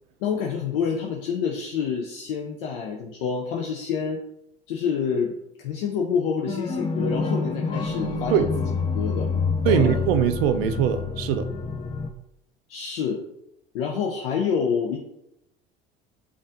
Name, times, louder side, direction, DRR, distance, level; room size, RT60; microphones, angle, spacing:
voice 1, 0.2-4.2 4.7-8.5 8.9-9.3 9.6-10.0 12.7-13.2 13.7-15.0, left 6 dB, 75° left, 1 dB, 0.5 m, -27 dB
sound 1, 6.5-12.1, left 4 dB, 20° left, 0.4 m, -27 dB
voice 2, 9.6-11.5, right 9 dB, 80° right, 9 dB, 0.4 m, -22 dB
5.2 x 2.4 x 2.5 m, 0.82 s
hypercardioid pair, 70°, 29 cm